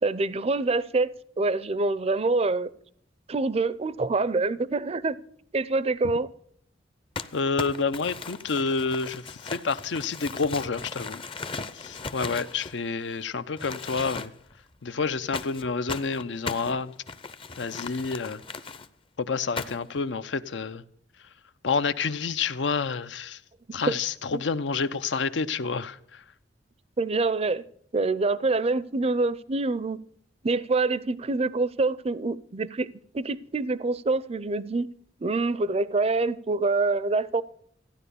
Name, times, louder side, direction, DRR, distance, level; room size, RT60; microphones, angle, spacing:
voice 1, 0.0-2.7 3.3-5.2 5.5-6.3 23.9-24.0 27.0-27.7 27.9-30.0 30.4-32.9 33.1-34.9 35.2-37.4, right 3 dB, 35° right, 0.5 m, -26 dB
Crumpling crinkling, 7.2-13.2 13.6-14.5 15.3-18.9 19.6-20.0, left 4 dB, 30° left, 0.6 m, -37 dB
voice 2, 7.3-11.2 11.7-14.3 14.8-16.9 17.6-18.4 19.2-20.8 21.6-23.4 23.7-26.2, left 4 dB, 80° left, 0.6 m, -29 dB
15.0 x 10.0 x 6.9 m
head